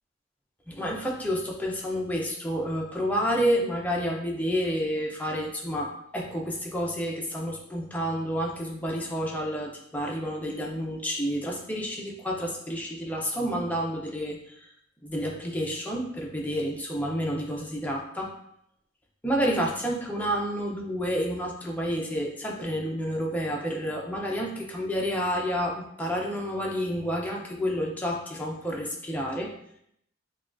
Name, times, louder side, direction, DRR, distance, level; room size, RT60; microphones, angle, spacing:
voice 1, 0.7-14.7 15.0-18.3 19.2-29.5, equal, 10° left, -1 dB, 0.5 m, -29 dB
5.9 x 2.3 x 2.5 m, 0.72 s
head